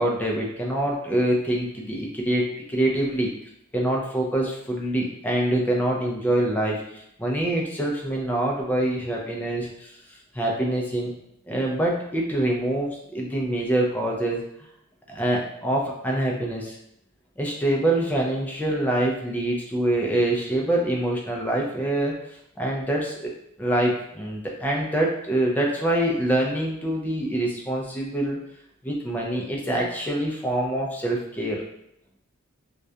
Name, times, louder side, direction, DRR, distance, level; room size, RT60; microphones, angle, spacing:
voice 1, 0.0-3.3 3.7-9.9 10.3-11.1 11.5-14.4 15.1-16.8 17.4-22.2 22.6-23.3 23.6-28.4 28.8-31.6, right 1 dB, 10° left, -2 dB, 0.3 m, -25 dB
2.3 x 2.1 x 2.6 m, 0.75 s
head